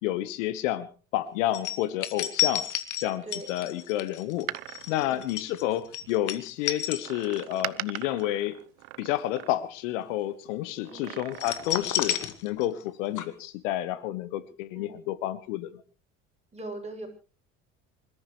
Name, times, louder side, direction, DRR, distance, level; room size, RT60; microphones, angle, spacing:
voice 1, 0.0-0.9 1.1-2.7 3.0-4.5 4.9-8.6 9.0-15.8, left 13 dB, 75° left, 16 dB, 1.3 m, -30 dB
sound 1, 1.5-7.6 8.0-8.2 11.3-12.9 13.2-13.3, left 11 dB, 50° left, 2.1 m, -31 dB
voice 2, 3.2-3.5 5.0-5.3 10.9-11.2 14.7-15.0 16.5-17.1, right 2 dB, 15° right, 1 dB, 7.4 m, -40 dB
Door, 4.3-6.1 7.0-9.9 10.8-12.0 12.3-12.4, right 22 dB, 70° right, 0.8 m, -40 dB
27.0 x 14.0 x 3.2 m, 0.36 s
hypercardioid pair, 70°, 38 cm